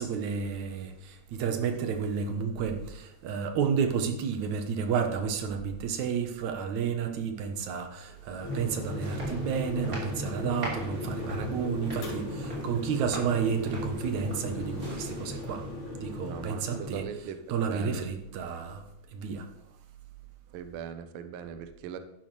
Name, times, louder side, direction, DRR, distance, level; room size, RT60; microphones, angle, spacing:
voice 1, 0.0-15.6 16.0-17.0 17.5-18.8 19.1-19.5, right 6 dB, 70° right, 5 dB, 2.4 m, -31 dB
sound 1, 8.1-15.9, right 1 dB, 30° right, 3.4 m, -42 dB
sound 2, 8.4-17.0, left 1 dB, 80° left, 5.3 m, -37 dB
voice 2, 16.2-18.1 20.5-22.0, right 8 dB, 90° right, 9 dB, 1.1 m, -40 dB
12.0 x 10.5 x 3.3 m, 0.84 s
omnidirectional pair, 3.5 m